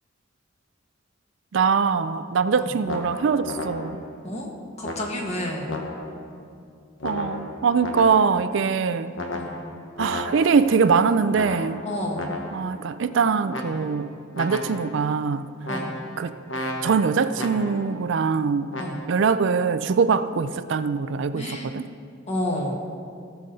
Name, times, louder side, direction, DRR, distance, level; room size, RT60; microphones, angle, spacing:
voice 1, 1.5-4.0 7.0-9.1 10.0-11.8 12.5-15.5 16.2-16.3 16.8-18.7 19.1-21.9, right 5 dB, 65° right, 0.4 m, -22 dB
sound 1, 2.8-4.2 4.8-6.3 7.0-8.5 9.2-10.8 11.3-12.8 13.5-14.1 14.3-15.1 15.6-18.0 18.7-19.1, left 2 dB, 70° left, 1.2 m, -34 dB
voice 2, 4.8-5.7 9.3-9.5 11.8-12.3 15.7-15.9 18.8-19.0 21.3-21.7 22.3-22.8, left 1 dB, 35° left, 1.7 m, -30 dB
18.0 x 7.0 x 4.1 m
head